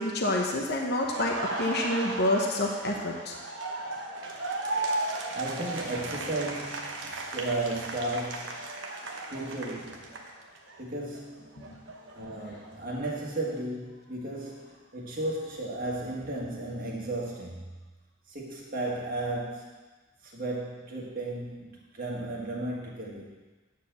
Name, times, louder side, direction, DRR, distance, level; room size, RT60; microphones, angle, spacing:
voice 1, 0.0-3.3 11.7-11.8, left 1 dB, 50° left, 0 dB, 0.9 m, -28 dB
Laughter, 1.0-10.8 11.1-13.1, right 2 dB, 60° right, 1.0 m, -36 dB
voice 2, 5.0-8.7 9.3-10.3 10.8-11.5 12.1-17.7 18.3-19.8 20.2-23.3, right 2 dB, 40° right, -3 dB, 1.8 m, -35 dB
9.4 x 4.6 x 6.8 m, 1.3 s
head